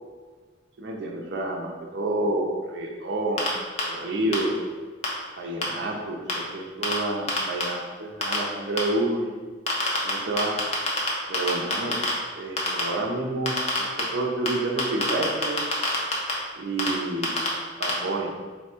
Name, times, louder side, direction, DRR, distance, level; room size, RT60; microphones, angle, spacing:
voice 1, 0.8-3.5 3.9-4.6 5.4-9.3 10.0-10.6 11.3-12.0 12.4-15.6 16.6-17.4 17.8-18.3, right 2 dB, 70° right, 0 dB, 0.6 m, -29 dB
sound 1, 3.4-3.5 3.8-3.9 4.3-4.4 5.0-5.1 5.6-5.7 6.3-6.4 6.8-6.9 7.3-7.6 8.2-8.4 8.8-8.9 9.7-10.1 10.4-11.1 11.3-12.1 12.6-12.8 13.5-14.0 14.5-14.6 14.8-16.3 16.8-16.9 17.2-17.5 17.8-17.9, left 4 dB, 35° left, 0.7 m, -24 dB
4.1 x 2.2 x 4.3 m, 1.5 s
head